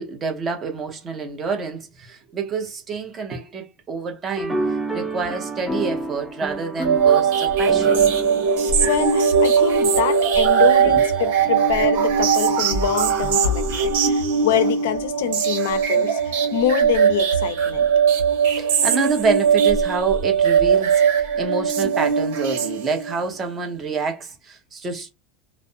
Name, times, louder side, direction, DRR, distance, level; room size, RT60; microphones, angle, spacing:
voice 1, 0.0-8.0 10.8-11.0 18.5-25.1, right 4 dB, 25° right, 0.8 m, -28 dB
sound 1, 4.4-9.9, right 2 dB, ahead, 0.5 m, -30 dB
sound 2, 6.8-23.2, right 6 dB, 80° right, 1.1 m, -19 dB
voice 2, 8.9-17.9, left 11 dB, 85° left, 0.4 m, -25 dB
2.5 x 2.1 x 2.5 m
supercardioid pair, 150°, 0 cm